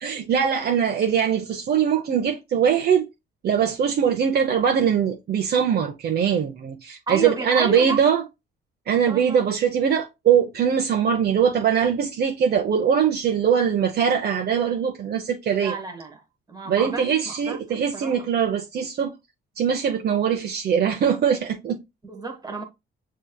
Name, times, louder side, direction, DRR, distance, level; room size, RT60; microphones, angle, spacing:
voice 1, 0.0-3.1 3.4-8.2 8.9-15.8 16.7-19.1 19.6-21.8, right 7 dB, 55° right, 0.6 m, -22 dB
voice 2, 7.1-8.0 8.9-9.4 15.6-16.2 16.5-17.6 17.9-18.2 22.0-22.6, right 4 dB, 20° right, 1.2 m, -31 dB
6.1 x 2.8 x 2.2 m
cardioid pair, 90°, 20 cm